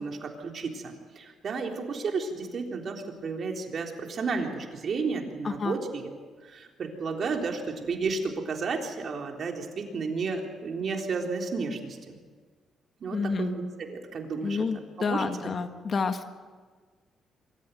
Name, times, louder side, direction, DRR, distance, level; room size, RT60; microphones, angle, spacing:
voice 1, 0.0-6.1 6.4-12.2 13.0-14.6 15.1-15.3, right 4 dB, 50° right, 2 dB, 3.7 m, -32 dB
voice 2, 5.4-5.8 13.1-13.6 14.4-16.3, left 4 dB, 45° left, 8 dB, 1.6 m, -29 dB
25.0 x 14.0 x 9.3 m, 1.5 s
cardioid pair, 90°, 0 cm